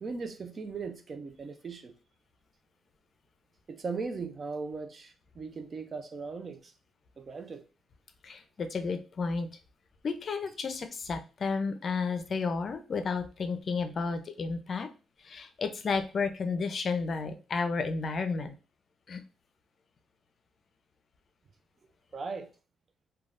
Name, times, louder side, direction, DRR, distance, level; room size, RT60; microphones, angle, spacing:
voice 1, 0.0-1.9 3.7-6.7 7.2-7.6 22.1-22.5, right 4 dB, 40° right, 0.5 m, -38 dB
voice 2, 8.2-9.5 10.0-14.9 15.2-18.5 19.1-19.2, left 4 dB, 45° left, 0.5 m, -32 dB
3.2 x 2.3 x 2.5 m
cardioid pair, 90°, 0 cm